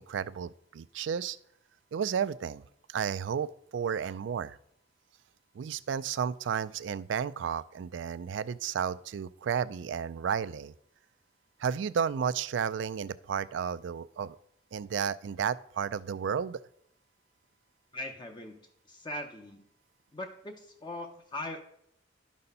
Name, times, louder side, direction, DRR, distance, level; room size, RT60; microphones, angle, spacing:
voice 1, 0.0-1.4 1.9-2.6 2.9-4.6 5.6-10.7 11.6-14.4 14.7-16.6, right 7 dB, 75° right, 17 dB, 0.3 m, -32 dB
voice 2, 17.9-18.6 18.9-19.7 20.1-21.6, left 1 dB, 25° left, 4 dB, 0.6 m, -40 dB
11.5 x 4.2 x 5.4 m, 0.72 s
head